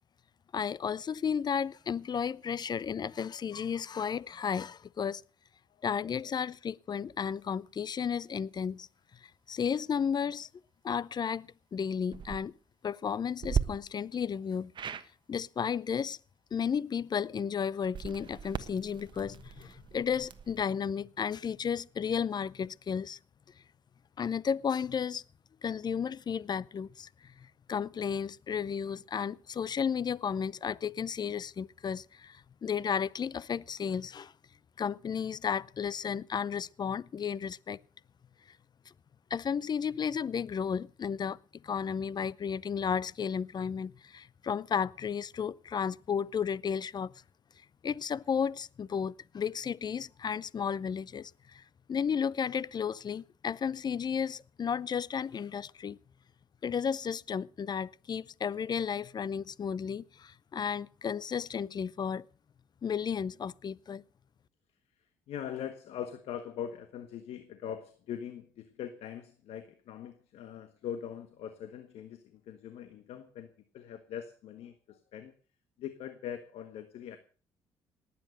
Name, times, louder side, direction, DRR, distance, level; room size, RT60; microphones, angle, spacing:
voice 1, 0.5-5.2 5.8-8.9 9.2-10.5 10.8-12.5 12.8-14.7 15.3-16.2 16.5-23.2 24.2-25.2 25.6-34.3 34.8-37.8 39.3-41.4 41.6-47.1 47.8-51.6 51.9-56.0 56.6-62.2 62.8-64.0, left 7 dB, 40° left, 0.6 m, -33 dB
sound 1, 12.0-12.4 13.4-13.6 14.7-15.1 17.8-20.6, right 7 dB, 50° right, 1.3 m, -36 dB
voice 2, 65.3-75.3 75.8-77.2, left 9 dB, 70° left, 1.6 m, -42 dB
18.5 x 9.5 x 6.4 m
supercardioid pair, 65°, 11 cm